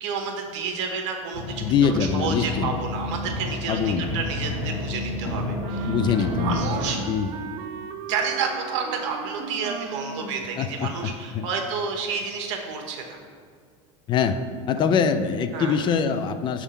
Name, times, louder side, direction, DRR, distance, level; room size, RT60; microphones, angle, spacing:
voice 1, 0.0-5.9 6.4-7.0 8.1-13.2 15.5-15.8, right 5 dB, 80° right, 3 dB, 1.2 m, -30 dB
sound 1, 1.3-6.9, left 2 dB, 60° left, 1.2 m, -30 dB
voice 2, 1.6-2.7 3.7-4.1 5.9-6.7 7.1-7.3 10.6-11.4 14.1-14.4 14.7-16.6, left 6 dB, 30° left, 10 dB, 0.4 m, -24 dB
Wind instrument woodwind instrument, 5.6-10.8, right 6 dB, 60° right, 0.5 m, -37 dB
7.0 x 3.6 x 5.5 m, 2.1 s
supercardioid pair, 140°, 16 cm